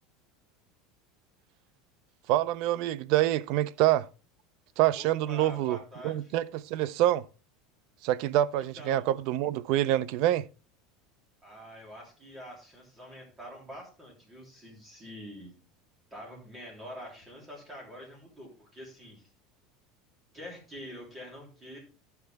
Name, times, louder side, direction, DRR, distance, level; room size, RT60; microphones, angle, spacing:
voice 1, 2.3-4.1 4.8-5.8 6.0-7.2 8.0-10.5, right 14 dB, 55° right, 0.5 m, -26 dB
voice 2, 4.9-6.3 8.8-9.1 11.4-15.6 16.1-19.2 20.3-21.8, equal, 15° right, 3.1 m, -46 dB
13.0 x 5.8 x 3.4 m
supercardioid pair, 155°, 0 cm